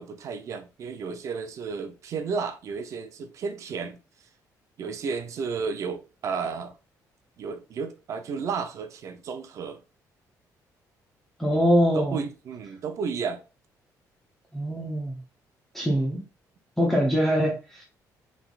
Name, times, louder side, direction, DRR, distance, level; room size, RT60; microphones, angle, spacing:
voice 1, 0.0-4.0 4.8-6.7 7.4-9.8 11.9-13.4, right 5 dB, 50° right, 0.7 m, -32 dB
voice 2, 11.4-12.2 14.5-15.2 15.7-16.2 16.8-17.8, equal, 5° left, 0.9 m, -23 dB
5.9 x 3.6 x 2.5 m
cardioid pair, 160°, 7 cm